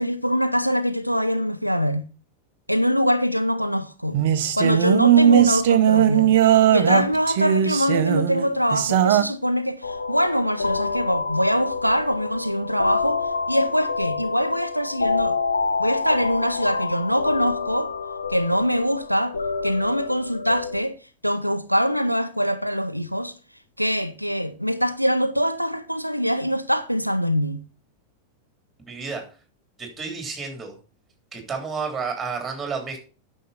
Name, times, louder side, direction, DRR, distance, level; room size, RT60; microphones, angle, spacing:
voice 1, 0.0-2.1 2.7-4.2 4.5-6.3 6.7-15.4 15.8-17.9 18.3-19.3 19.6-20.9 21.2-23.3 23.8-27.6, equal, 90° right, 0.5 m, -23 dB
sound 1, 4.1-9.2, right 10 dB, 55° right, 0.8 m, -18 dB
sound 2, 9.8-20.8, left 4 dB, 75° left, 0.9 m, -28 dB
voice 2, 28.9-29.2 29.8-30.8 31.3-33.0, right 5 dB, 15° right, 3.4 m, -31 dB
9.4 x 6.4 x 5.5 m
figure-of-eight pair, 90°, 0 cm